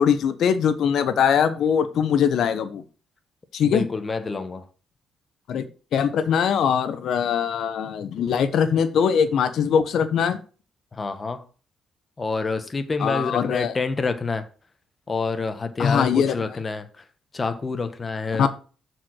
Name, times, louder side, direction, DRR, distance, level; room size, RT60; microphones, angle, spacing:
voice 1, 0.0-2.8 3.5-3.8 5.5-5.6 5.9-10.4 13.0-13.7 15.8-16.4 18.4-18.5, left 7 dB, 70° left, 1.0 m, -21 dB
voice 2, 3.6-4.6 10.9-11.4 12.2-14.5 15.1-17.1 17.3-18.5, left 4 dB, 30° left, 1.1 m, -27 dB
6.9 x 4.7 x 6.3 m
cardioid pair, 90°, 0 cm